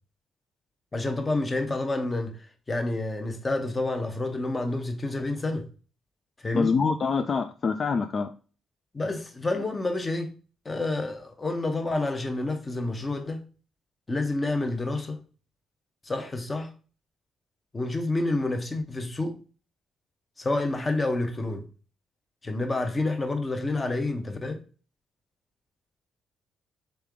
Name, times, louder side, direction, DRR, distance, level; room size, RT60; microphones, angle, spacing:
voice 1, 0.9-2.4 2.7-5.7 6.4-6.7 8.9-10.3 10.6-13.4 14.1-15.2 16.0-16.7 17.7-19.4 20.4-21.6 22.4-24.6, left 2 dB, 25° left, 0.8 m, -28 dB
voice 2, 6.5-8.3, left 5 dB, 45° left, 0.3 m, -25 dB
3.6 x 3.4 x 3.4 m
cardioid pair, 90°, 0 cm